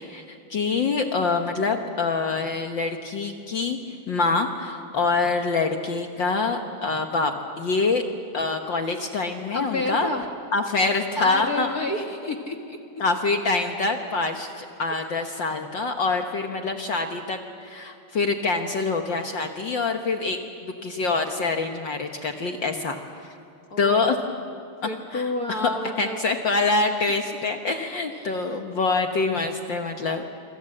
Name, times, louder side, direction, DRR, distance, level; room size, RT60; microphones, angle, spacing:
voice 1, 0.0-3.8 4.1-8.0 8.3-10.1 10.5-11.7 13.0-23.0 23.8-24.2 25.1-25.7 26.0-30.2, left 3 dB, 60° left, 5 dB, 1.2 m, -25 dB
voice 2, 9.5-10.3 11.2-12.8 23.7-24.1 24.6-26.2 28.1-28.5, left 2 dB, 45° left, 3 dB, 1.3 m, -30 dB
27.0 x 25.5 x 7.8 m, 2.5 s
omnidirectional pair, 3.7 m